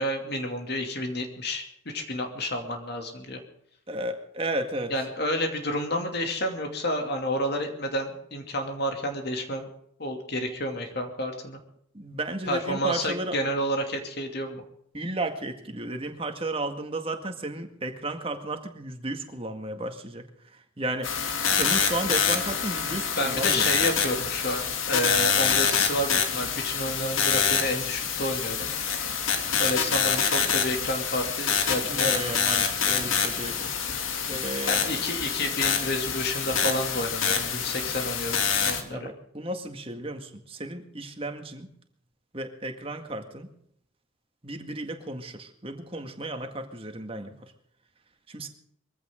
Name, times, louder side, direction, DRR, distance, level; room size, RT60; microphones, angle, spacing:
voice 1, 0.0-3.4 4.9-9.7 10.0-11.6 12.5-14.6 23.2-28.7 29.6-32.3 34.6-39.1, left 1 dB, 50° left, 4 dB, 2.7 m, -30 dB
voice 2, 3.9-4.9 11.9-13.4 14.9-20.3 20.5-21.1 21.5-23.7 31.8-33.7 34.3-35.0 38.9-41.7 42.3-43.5 44.4-47.5 48.3-48.5, right 1 dB, 25° right, 6 dB, 1.9 m, -33 dB
sound 1, 21.0-38.8, left 7 dB, 75° left, 2.5 m, -26 dB
22.5 x 15.5 x 3.8 m, 0.70 s
head